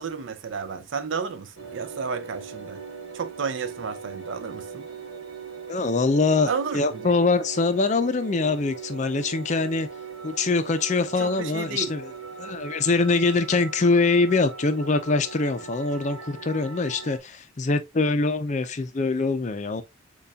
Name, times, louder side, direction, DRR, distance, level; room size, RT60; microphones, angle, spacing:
voice 1, 0.0-2.8 3.1-4.9 6.4-6.8 11.2-11.9, right 5 dB, 65° right, 0.5 m, -32 dB
sound 1, 1.6-17.2, right 5 dB, 80° right, 1.0 m, -40 dB
voice 2, 5.7-9.9 10.2-12.1 12.4-19.8, left 3 dB, 35° left, 0.5 m, -23 dB
6.7 x 2.3 x 2.3 m
head